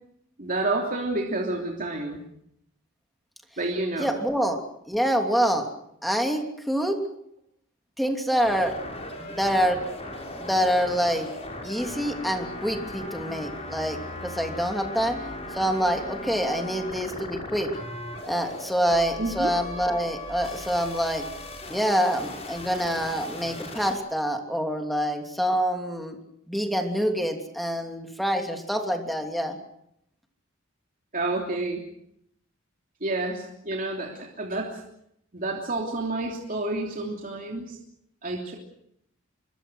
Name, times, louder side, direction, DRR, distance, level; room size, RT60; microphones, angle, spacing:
voice 1, 0.4-2.2 3.6-4.1 19.2-19.5 31.1-31.8 33.0-34.7 35.3-37.8 38.2-38.5, right 2 dB, 45° right, 0 dB, 3.2 m, -29 dB
voice 2, 4.0-4.6 4.9-5.7 6.0-7.0 8.0-8.7 9.3-9.8 10.4-11.3 11.6-15.2 15.5-17.7 18.3-21.3 21.7-26.2 26.5-29.6, equal, ahead, 4 dB, 3.0 m, -26 dB
sound 1, 8.3-23.9, left 1 dB, 30° left, 6.0 m, -38 dB
25.0 x 23.5 x 6.4 m, 0.74 s
head